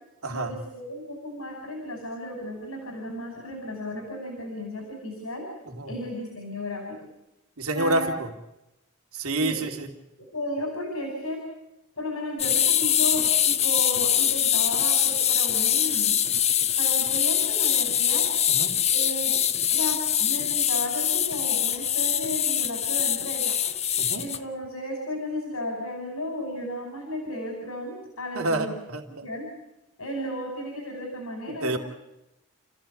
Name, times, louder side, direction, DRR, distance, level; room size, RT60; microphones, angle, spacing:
voice 1, 0.3-5.5 5.9-7.0 7.7-8.1 9.4-9.7 10.2-11.4 12.0-16.2 16.8-18.3 18.9-19.4 19.7-23.6 24.1-28.7 29.2-29.5 30.0-31.8, left 1 dB, 75° left, 2 dB, 5.6 m, -34 dB
voice 2, 7.6-8.3 9.1-9.9 18.5-18.7 24.0-24.2 28.4-29.0 31.6-31.8, right 2 dB, 80° right, 4 dB, 2.6 m, -28 dB
sound 1, 12.4-24.4, left 9 dB, 30° left, 0.8 m, -23 dB
29.5 x 15.0 x 8.5 m, 0.93 s
head